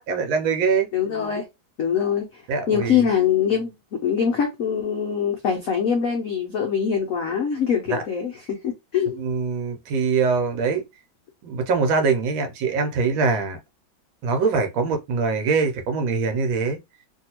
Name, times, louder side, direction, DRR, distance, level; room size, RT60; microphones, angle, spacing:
voice 1, 0.0-0.9 2.5-3.0 7.9-8.0 9.2-10.8 11.4-13.6 14.2-16.8, right 4 dB, 75° right, 1.4 m, -23 dB
voice 2, 0.9-1.4 1.8-2.4 2.7-3.7 4.0-9.1, left 7 dB, 75° left, 0.7 m, -23 dB
2.9 x 2.7 x 2.9 m
omnidirectional pair, 2.2 m